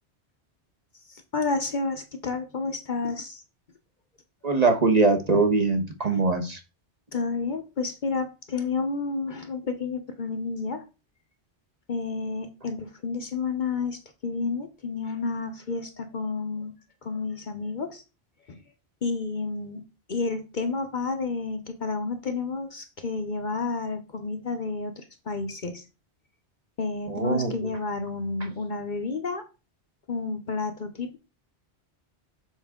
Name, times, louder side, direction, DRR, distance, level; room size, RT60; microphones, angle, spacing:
voice 1, 1.1-3.4 6.0-6.2 7.1-10.8 11.9-16.7 17.0-18.0 18.5-18.6 19.0-19.8 20.1-25.8 26.8-29.4 30.1-31.2, left 4 dB, 50° left, 7 dB, 0.9 m, -30 dB
voice 2, 4.4-6.6 27.1-27.5, right 3 dB, 40° right, 5 dB, 1.1 m, -22 dB
7.3 x 4.8 x 3.6 m, 0.30 s
omnidirectional pair, 1.1 m